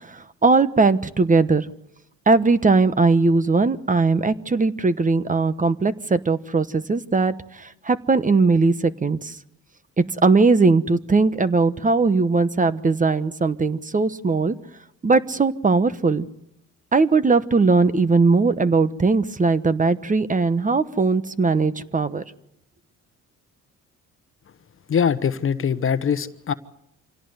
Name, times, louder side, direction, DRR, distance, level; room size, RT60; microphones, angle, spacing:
voice 1, 0.1-1.7 2.3-9.4 10.0-14.5 15.0-16.2 16.9-22.2, right 4 dB, 25° right, 13 dB, 1.1 m, -19 dB
voice 2, 24.9-26.5, left 7 dB, 45° left, 13 dB, 1.1 m, -22 dB
26.5 x 17.0 x 8.0 m, 0.79 s
cardioid pair, 90°, 30 cm